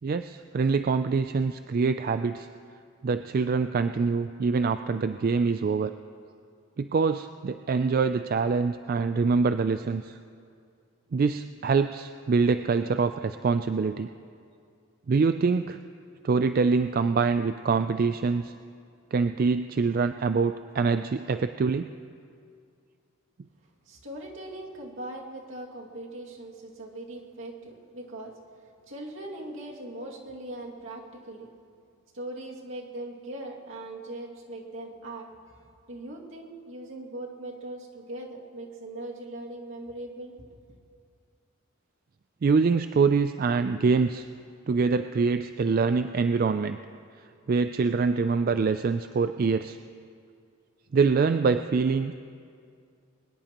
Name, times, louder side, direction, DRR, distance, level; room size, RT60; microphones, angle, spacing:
voice 1, 0.0-2.5 3.0-5.9 6.8-10.2 11.1-14.1 15.1-15.8 16.2-18.5 19.1-21.9 42.4-44.2 44.7-46.8 47.5-49.8 50.9-52.2, right 4 dB, 45° right, 9 dB, 0.3 m, -25 dB
voice 2, 23.6-31.5 32.1-40.3, right 1 dB, 70° right, -2 dB, 2.3 m, -40 dB
22.5 x 20.0 x 3.0 m, 2.3 s
head